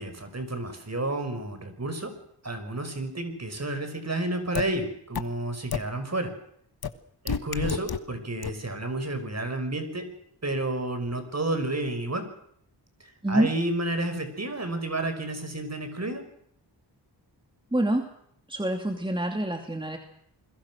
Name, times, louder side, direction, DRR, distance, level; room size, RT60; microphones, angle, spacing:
voice 1, 0.0-2.1 2.4-6.3 7.2-10.1 10.4-12.3 13.0-16.2, right 2 dB, 35° right, 8 dB, 5.8 m, -31 dB
sound 1, 4.5-4.6 5.1-5.2 5.7-5.8 6.8-6.9 7.3-8.0 8.4-8.5, left 6 dB, 60° left, 1.7 m, -27 dB
voice 2, 17.7-18.1 18.5-20.0, right 1 dB, 10° right, 4 dB, 2.7 m, -26 dB
28.5 x 22.0 x 6.3 m, 0.69 s
wide cardioid pair, 90°, 42 cm